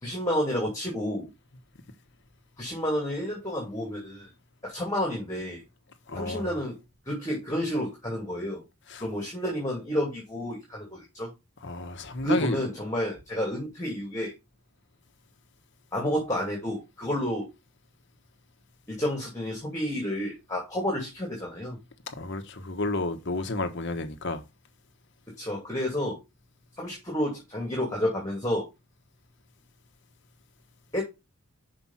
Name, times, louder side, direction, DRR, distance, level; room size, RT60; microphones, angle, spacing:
voice 1, 0.0-1.3 2.6-4.3 4.6-5.6 6.1-6.8 7.1-8.6 9.0-11.3 12.2-14.3 15.9-17.5 18.9-21.8 25.4-26.2 26.8-28.7 30.9-31.0, equal, 15° left, 2.4 m, -30 dB
voice 2, 6.1-6.5 8.9-9.0 11.6-12.6 22.1-24.4, left 2 dB, 55° left, 1.1 m, -31 dB
6.1 x 5.0 x 5.5 m
head